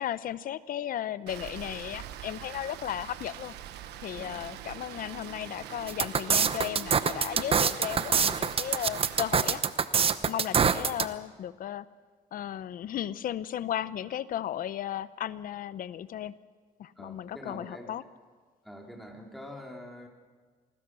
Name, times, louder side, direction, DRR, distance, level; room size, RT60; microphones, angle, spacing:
voice 1, 0.0-3.5 4.0-9.6 10.0-11.9 12.3-16.4 16.8-18.0, left 11 dB, 55° left, 16 dB, 0.9 m, -35 dB
Rain, 1.3-9.6, right 11 dB, 80° right, 1.4 m, -43 dB
voice 2, 4.2-4.5 10.2-10.4 17.0-18.0 18.6-20.1, left 1 dB, ahead, 1 dB, 3.7 m, -45 dB
sound 1, 5.9-11.1, right 6 dB, 35° right, 0.9 m, -25 dB
27.0 x 20.0 x 6.3 m, 1.5 s
cardioid pair, 110°, 17 cm